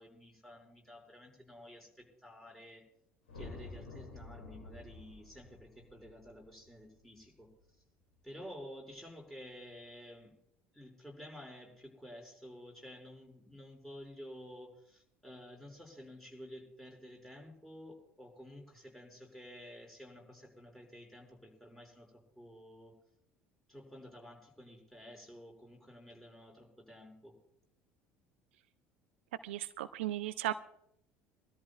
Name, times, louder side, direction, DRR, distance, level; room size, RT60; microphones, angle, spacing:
voice 1, 0.0-2.9 3.3-7.5 8.2-10.3 10.7-23.0 23.7-27.4, equal, 5° left, -1 dB, 5.9 m, -52 dB
sound 1, 3.3-7.7, left 3 dB, 75° left, 2.6 m, -50 dB
voice 2, 29.4-30.5, right 14 dB, 70° right, 13 dB, 0.5 m, -36 dB
25.0 x 13.5 x 2.4 m, 0.74 s
figure-of-eight pair, 65°, 7 cm